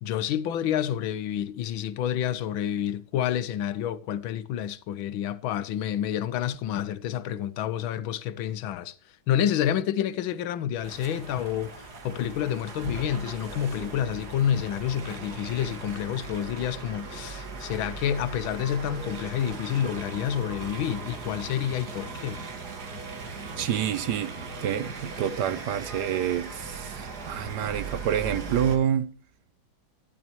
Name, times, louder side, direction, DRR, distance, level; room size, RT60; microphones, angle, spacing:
voice 1, 0.0-8.9 9.3-22.4, left 10 dB, 80° left, 1.5 m, -29 dB
sound 1, 10.8-28.8, right 3 dB, 55° right, 2.2 m, -38 dB
voice 2, 23.6-29.2, right 9 dB, 70° right, 1.2 m, -28 dB
12.5 x 12.0 x 3.0 m
omnidirectional pair, 2.2 m